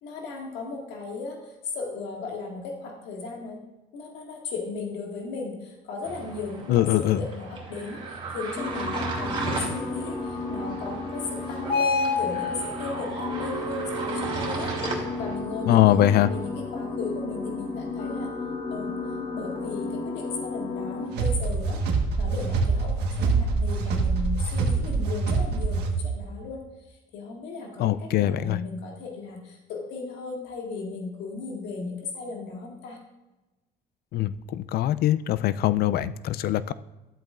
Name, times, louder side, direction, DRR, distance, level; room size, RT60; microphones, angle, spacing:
voice 1, 0.0-3.6 3.9-14.7 15.2-18.3 18.7-19.0 19.3-21.8 22.2-26.6 26.9-33.0, left 4 dB, 85° left, 0 dB, 1.9 m, -36 dB
sound 1, 6.0-15.4, right 3 dB, 30° right, 2.5 m, -35 dB
voice 2, 6.7-7.2 15.7-16.3 27.8-28.6 34.1-36.7, left 13 dB, 65° left, 15 dB, 0.4 m, -22 dB
sound 2, 8.5-21.1, left 3 dB, 30° left, 1.8 m, -31 dB
sound 3, 21.1-26.2, right 4 dB, 80° right, 1.4 m, -25 dB
12.5 x 8.1 x 2.5 m, 1.0 s
cardioid pair, 110°, 17 cm